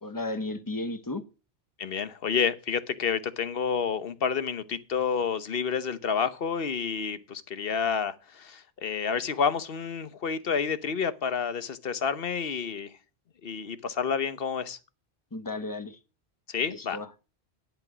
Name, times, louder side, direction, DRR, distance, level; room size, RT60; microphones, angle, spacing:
voice 1, 0.0-1.2 15.3-16.0 16.7-17.1, left 2 dB, 20° left, 1.0 m, -34 dB
voice 2, 1.8-12.9 13.4-14.8 16.5-17.0, left 6 dB, 65° left, 1.1 m, -29 dB
10.5 x 9.1 x 6.0 m
omnidirectional pair, 1.1 m